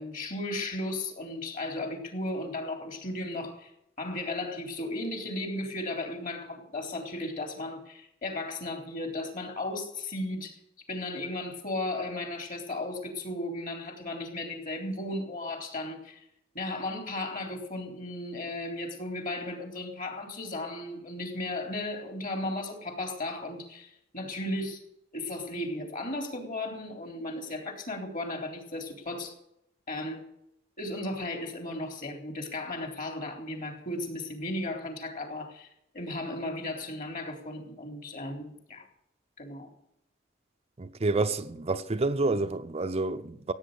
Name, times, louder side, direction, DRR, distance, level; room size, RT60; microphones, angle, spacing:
voice 1, 0.0-3.7 4.0-10.6 10.9-16.2 16.5-24.8 25.1-29.3 29.9-30.3 30.8-35.7 35.9-38.9 39.4-39.7, left 2 dB, 45° left, 3.7 m, -35 dB
voice 2, 40.8-43.5, right 3 dB, 30° right, 0.6 m, -29 dB
16.5 x 9.0 x 6.8 m
head